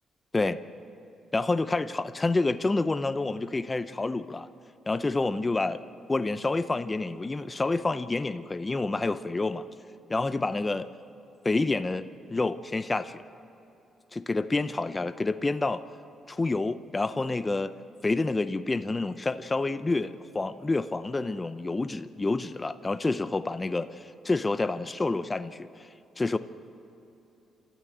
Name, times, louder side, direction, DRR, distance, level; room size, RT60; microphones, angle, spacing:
voice 1, 1.3-4.5 4.9-5.8 6.1-9.6 10.1-10.9 11.4-13.2 14.1-15.8 16.3-17.7 18.0-25.9 26.2-26.4, left 3 dB, 20° left, 12 dB, 0.7 m, -28 dB
28.5 x 13.5 x 8.0 m, 3.0 s
cardioid pair, 90°, 0 cm